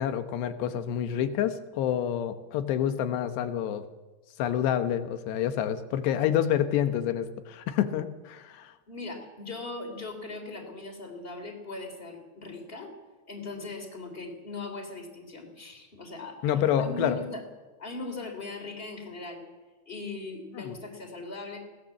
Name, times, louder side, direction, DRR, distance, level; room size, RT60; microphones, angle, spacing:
voice 1, 0.0-3.8 4.4-8.7 16.4-17.2 20.6-20.7, left 10 dB, 80° left, 9 dB, 3.2 m, -28 dB
voice 2, 8.9-12.9 13.3-17.4 17.8-19.4 19.8-21.6, left 3 dB, 15° left, 4 dB, 3.2 m, -39 dB
23.0 x 18.0 x 7.3 m, 1.2 s
omnidirectional pair, 5.0 m